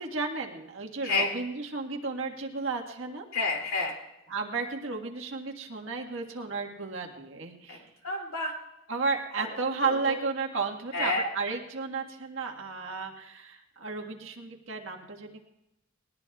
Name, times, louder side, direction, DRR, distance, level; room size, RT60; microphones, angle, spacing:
voice 1, 0.0-3.2 4.3-7.8 8.9-15.4, right 4 dB, 70° right, 2 dB, 1.6 m, -33 dB
voice 2, 3.3-4.0 7.7-8.5 9.4-9.5 9.8-10.2 10.9-11.3, left 3 dB, 85° left, 0 dB, 2.8 m, -30 dB
20.0 x 19.5 x 2.4 m, 0.90 s
head